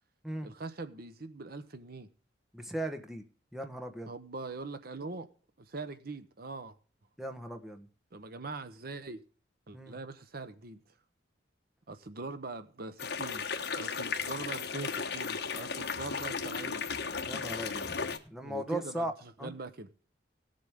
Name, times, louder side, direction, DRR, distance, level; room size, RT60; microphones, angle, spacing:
voice 1, 0.4-2.1 4.1-5.3 5.6-6.8 8.1-9.2 9.7-10.8 11.9-13.5 13.7-16.8 18.4-19.9, right 3 dB, 50° right, 0.9 m, -42 dB
voice 2, 2.5-3.2 3.5-4.1 7.2-7.9 9.7-10.0 17.2-17.9 18.3-19.1 19.4-19.5, right 1 dB, ahead, 1.2 m, -37 dB
sound 1, 13.0-18.2, left 5 dB, 60° left, 1.3 m, -35 dB
18.0 x 7.7 x 3.6 m
head